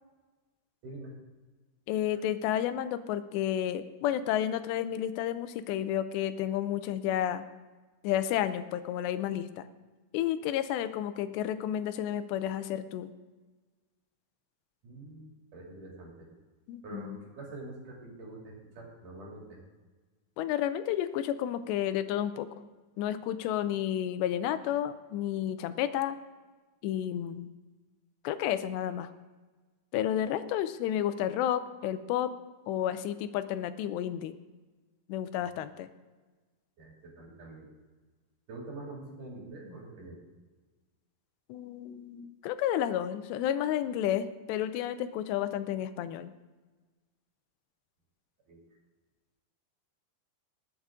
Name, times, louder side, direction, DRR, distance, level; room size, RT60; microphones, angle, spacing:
voice 1, 1.9-7.5 8.0-9.7 10.1-13.1 16.7-17.2 20.4-22.5 23.0-26.2 26.8-27.5 28.2-29.1 29.9-32.3 32.7-34.3 35.1-35.9 41.5-46.3, left 11 dB, 90° left, 12 dB, 2.9 m, -31 dB
voice 2, 14.8-16.3 16.8-19.6 36.8-37.7 38.5-40.2 48.5-48.6, right 2 dB, 55° right, -2 dB, 4.0 m, -45 dB
20.0 x 8.1 x 3.7 m, 1.3 s
omnidirectional pair, 4.8 m